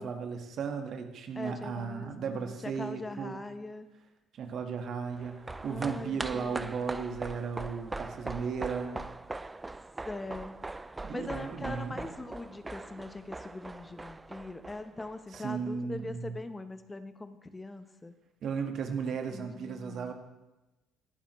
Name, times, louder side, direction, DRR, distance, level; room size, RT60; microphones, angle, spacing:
voice 1, 0.0-3.4 4.3-9.0 11.0-12.0 15.3-16.4 18.4-20.1, right 6 dB, 55° right, 5 dB, 1.6 m, -35 dB
voice 2, 1.4-3.9 5.7-6.7 10.0-10.6 11.1-18.1 19.3-20.1, left 2 dB, 20° left, 10 dB, 0.9 m, -42 dB
sound 1, 5.1-15.7 16.0-16.1, right 2 dB, 15° right, 0.4 m, -41 dB
19.5 x 11.5 x 3.2 m, 1.0 s
hypercardioid pair, 60°, 0 cm